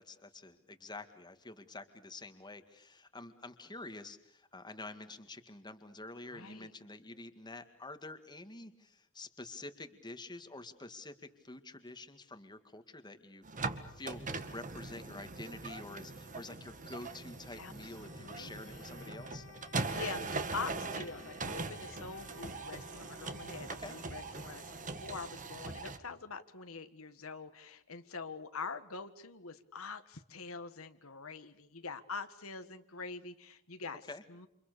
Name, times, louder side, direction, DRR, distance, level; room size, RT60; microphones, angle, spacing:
voice 1, 0.0-19.5 23.8-24.0 33.9-34.2, left 2 dB, 20° left, 8 dB, 2.0 m, -48 dB
voice 2, 6.3-6.7 17.6-17.7 18.0-18.9 19.8-34.0 34.3-34.5, left 4 dB, 70° left, 9 dB, 1.7 m, -44 dB
sound 1, 13.4-26.0, right 3 dB, 40° right, 2.0 m, -41 dB
Wind instrument woodwind instrument, 17.9-25.5, left 4 dB, 90° left, 4.9 m, -57 dB
29.0 x 27.5 x 6.8 m, 0.74 s
head